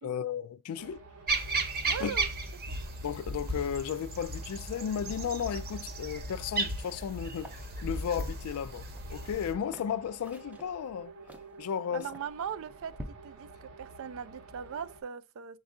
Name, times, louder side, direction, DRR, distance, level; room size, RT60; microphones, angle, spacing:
voice 1, 0.0-1.0 2.0-2.1 3.0-7.5 7.8-11.1 11.6-12.1, left 8 dB, 75° left, 0.3 m, -34 dB
sound 1, 0.8-15.0, right 4 dB, 80° right, 0.8 m, -52 dB
sound 2, 1.3-9.5, right 2 dB, 45° right, 0.8 m, -35 dB
voice 2, 1.8-2.3 11.9-12.9 13.2-15.6, right 7 dB, 65° right, 0.4 m, -39 dB
sound 3, 7.4-13.1, equal, 5° right, 0.5 m, -50 dB
6.2 x 2.3 x 3.6 m
head